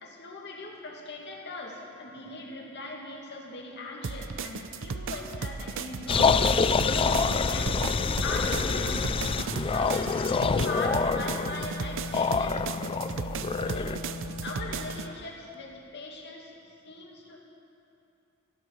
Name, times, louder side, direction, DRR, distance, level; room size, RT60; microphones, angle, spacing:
voice 1, 0.0-9.1 9.7-14.0 14.4-17.4, left 2 dB, 55° left, -1 dB, 2.3 m, -40 dB
sound 1, 4.0-15.1, right 4 dB, 65° right, 0.6 m, -36 dB
sound 2, 6.1-14.0, left 5 dB, 25° left, 0.3 m, -26 dB
Wind instrument woodwind instrument, 10.0-15.2, left 2 dB, 85° left, 0.5 m, -40 dB
16.0 x 12.5 x 6.5 m, 2.8 s
head